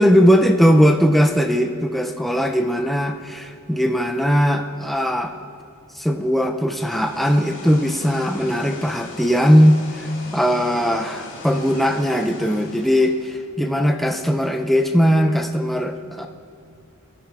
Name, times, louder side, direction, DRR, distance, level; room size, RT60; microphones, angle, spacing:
voice 1, 0.0-5.4 5.9-16.3, equal, ahead, 4 dB, 0.3 m, -19 dB
sound 1, 6.7-13.5, left 2 dB, 55° left, 1.4 m, -39 dB
18.0 x 9.7 x 2.4 m, 2.5 s
head